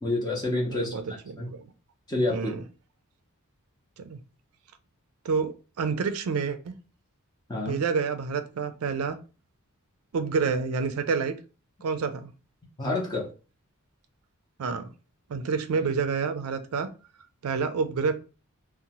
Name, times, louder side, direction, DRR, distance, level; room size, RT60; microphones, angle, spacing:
voice 1, 0.0-0.9 1.4-1.5 2.1-2.5 7.5-7.8 12.8-13.3, left 2 dB, 20° left, -3 dB, 0.5 m, -28 dB
voice 2, 0.7-1.7 2.3-2.6 4.0-4.2 5.2-6.8 7.7-9.2 10.1-11.3 11.8-12.3 14.6-14.9 15.3-16.9 17.4-18.1, right 5 dB, 70° right, 9 dB, 0.4 m, -28 dB
2.7 x 2.0 x 2.9 m, 0.34 s
head